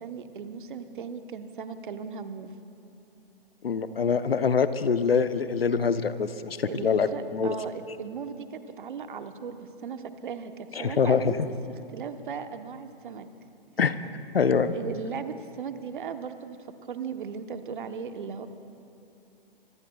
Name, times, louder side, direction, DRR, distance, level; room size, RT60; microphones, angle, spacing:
voice 1, 0.0-2.5 6.6-11.5 11.9-13.3 14.7-16.6 16.8-18.5, right 6 dB, 55° right, 8 dB, 1.1 m, -37 dB
voice 2, 3.6-7.6 10.7-11.5 13.8-14.0 14.3-14.7, left 6 dB, 75° left, 12 dB, 0.8 m, -24 dB
25.0 x 22.5 x 2.4 m, 2.6 s
figure-of-eight pair, 125°, 30 cm